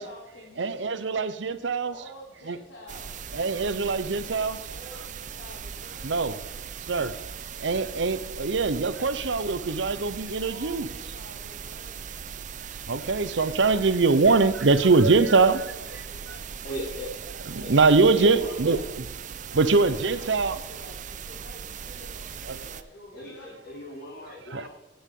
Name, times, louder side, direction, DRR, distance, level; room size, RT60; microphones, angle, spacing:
voice 1, 0.0-1.1 1.9-3.3 4.7-6.7 10.4-12.2 15.1-17.1 17.6-18.9 19.6-23.6, left 1 dB, 80° left, -4 dB, 2.7 m, -49 dB
voice 2, 0.6-1.9 2.5-2.6 3.3-4.6 6.0-6.4 6.9-7.2 7.6-10.9 12.9-15.7 17.5-19.1 19.5-20.6 22.5-22.6 24.5-24.7, right 4 dB, 90° right, 13 dB, 0.7 m, -23 dB
sound 1, 2.9-22.8, right 7 dB, 45° right, 0.5 m, -39 dB
voice 3, 16.6-17.1 17.6-18.9 19.5-20.0 23.1-24.7, left 1 dB, 60° left, -2 dB, 3.2 m, -38 dB
17.5 x 8.7 x 3.8 m, 1.1 s
head